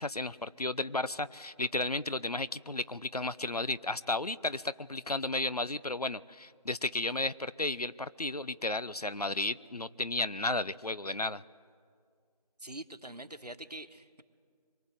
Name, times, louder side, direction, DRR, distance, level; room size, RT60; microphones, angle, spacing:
voice 1, 0.0-11.4, left 2 dB, 70° left, 16 dB, 0.8 m, -33 dB
voice 2, 12.6-14.2, right 1 dB, 75° right, 9 dB, 1.5 m, -44 dB
24.5 x 23.0 x 8.0 m, 2.1 s
figure-of-eight pair, 180°, 20 cm